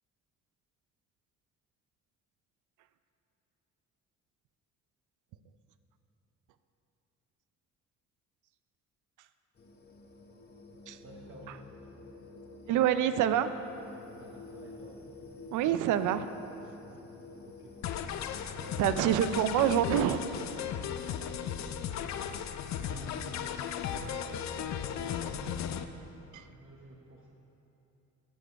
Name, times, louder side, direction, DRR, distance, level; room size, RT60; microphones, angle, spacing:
sound 1, 9.6-17.9, left 3 dB, 30° left, 0.9 m, -50 dB
voice 1, 11.0-11.8 14.2-15.0 17.4-18.3 18.5-18.8 20.9-22.5 22.7-23.5 23.8-25.7 26.4-27.3, right 1 dB, 40° right, -2 dB, 1.0 m, -50 dB
voice 2, 12.7-13.5 15.5-16.3 18.8-20.2 26.3-26.5, right 10 dB, 80° right, 11 dB, 0.5 m, -26 dB
sound 2, 17.8-25.8, left 9 dB, 65° left, 0.6 m, -36 dB
14.0 x 5.1 x 5.7 m, 3.0 s
cardioid pair, 90°, 30 cm